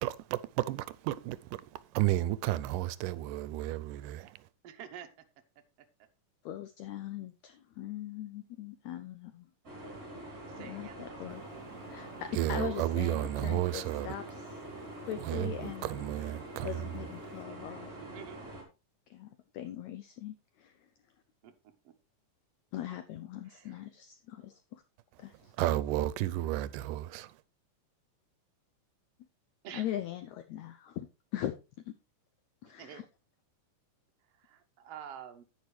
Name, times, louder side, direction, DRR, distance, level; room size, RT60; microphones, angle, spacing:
voice 1, 0.0-1.6 1.9-4.4 12.3-14.2 15.2-17.2 25.6-27.3, right 15 dB, 85° right, 2.2 m, -32 dB
voice 2, 4.6-5.2 10.4-11.3 18.0-18.4 21.4-21.5 21.8-21.9 23.4-23.9 29.6-29.9 32.6-33.0 34.3-35.4, right 9 dB, 60° right, 1.8 m, -48 dB
voice 3, 6.4-9.5 10.6-11.4 11.9-14.6 15.0-16.0 16.6-17.9 19.1-19.3 19.5-20.7 22.7-24.8 25.2-25.5 29.7-31.1 31.3-31.5 32.6-33.0, left 12 dB, 75° left, 1.8 m, -40 dB
sound 1, 9.6-18.6, right 1 dB, 25° right, 3.6 m, -45 dB
10.0 x 9.6 x 3.2 m
omnidirectional pair, 3.7 m